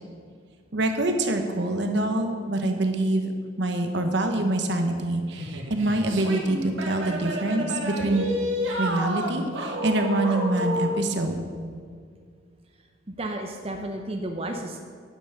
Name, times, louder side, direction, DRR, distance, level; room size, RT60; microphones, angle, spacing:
voice 1, 0.7-3.3 3.6-8.2 8.8-11.5, right 1 dB, 60° right, 5 dB, 1.0 m, -25 dB
sound 1, 5.3-11.0, equal, 90° right, 1.5 m, -30 dB
voice 2, 13.1-14.8, right 1 dB, 30° right, 2 dB, 0.7 m, -32 dB
11.0 x 5.8 x 6.6 m, 2.1 s
head